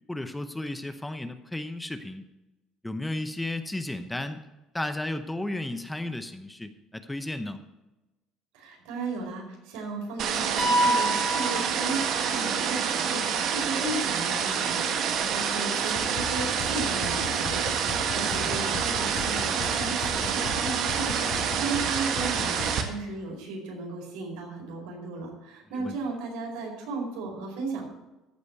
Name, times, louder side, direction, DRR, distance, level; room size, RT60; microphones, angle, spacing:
voice 1, 0.1-2.2 2.8-4.4 4.7-7.6 18.4-18.6 25.7-26.0, left 1 dB, 5° left, 9 dB, 0.8 m, -34 dB
voice 2, 8.5-22.6 22.8-27.8, right 3 dB, 85° right, -1 dB, 4.8 m, -35 dB
sound 1, 10.2-22.8, right 7 dB, 55° right, 1.6 m, -27 dB
sound 2, 10.6-12.5, right 1 dB, 20° right, 2.1 m, -27 dB
sound 3, 16.0-22.8, left 5 dB, 70° left, 4.0 m, -38 dB
14.5 x 5.0 x 8.1 m, 1.0 s
cardioid pair, 130°, 0 cm